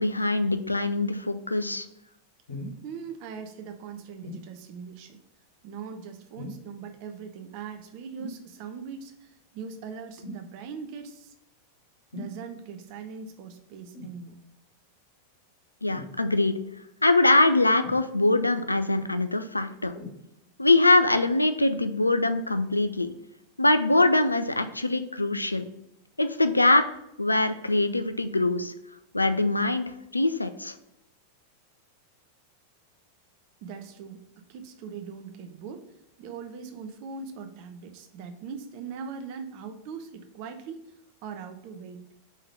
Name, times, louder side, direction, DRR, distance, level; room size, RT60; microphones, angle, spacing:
voice 1, 0.0-1.9 15.8-16.6 17.0-19.9 20.6-23.1 23.6-25.7 26.2-26.8 27.2-28.7 29.1-29.9 30.1-30.7, left 2 dB, 85° left, 9 dB, 0.4 m, -23 dB
sound 1, 2.5-2.8 4.2-4.5 6.3-6.7 8.2-8.4 10.2-10.5 12.1-12.4 13.9-14.2 15.9-16.1 17.8-18.4 19.9-20.2 21.0-21.1, left 1 dB, 65° left, 2.1 m, -40 dB
voice 2, 2.8-5.2 5.6-11.3 12.1-14.4 33.6-35.9 36.2-40.9 41.2-42.0, right 6 dB, 45° right, 6 dB, 0.8 m, -40 dB
4.9 x 3.8 x 5.5 m, 0.84 s
figure-of-eight pair, 90°, 0 cm